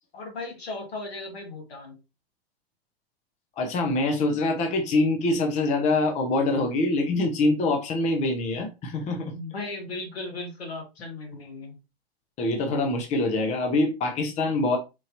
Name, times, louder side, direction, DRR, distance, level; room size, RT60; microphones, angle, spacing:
voice 1, 0.1-2.0 9.3-11.8, left 2 dB, 70° left, 1.5 m, -36 dB
voice 2, 3.6-9.3 12.4-14.8, left 2 dB, 20° left, 0.7 m, -24 dB
4.5 x 2.7 x 2.5 m
figure-of-eight pair, 105°, 32 cm